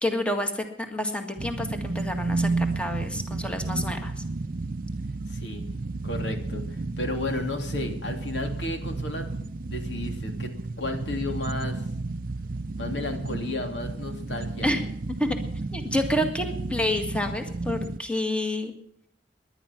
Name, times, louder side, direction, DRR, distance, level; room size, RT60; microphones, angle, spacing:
voice 1, 0.0-4.1 14.6-14.8 15.2-15.4 15.7-18.7, left 1 dB, 5° left, 5 dB, 1.8 m, -28 dB
sound 1, 1.4-18.0, right 3 dB, 50° right, 0.6 m, -32 dB
voice 2, 5.3-5.6 6.0-10.5 10.8-11.8 12.8-14.7, left 2 dB, 80° left, 4 dB, 2.8 m, -33 dB
18.5 x 11.0 x 6.0 m, 0.70 s
head